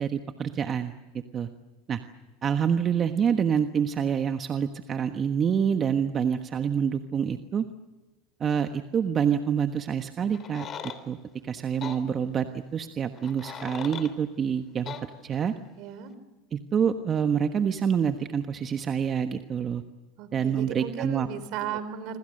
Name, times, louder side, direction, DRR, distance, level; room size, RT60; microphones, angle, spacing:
voice 1, 0.0-1.5 1.9-2.0 2.4-7.6 8.4-10.7 11.1-11.2 11.4-14.9 15.2-15.5 16.5-19.8 20.3-21.3, right 7 dB, 35° right, 8 dB, 1.3 m, -27 dB
sound 1, 10.3-11.0 11.8-12.0 13.2-14.1 14.9-15.0, left 7 dB, 40° left, 3.3 m, -38 dB
voice 2, 15.8-16.1 20.2-22.2, right 8 dB, 60° right, 12 dB, 3.7 m, -35 dB
26.5 x 26.0 x 6.7 m, 1.1 s
hypercardioid pair, 95°, 0 cm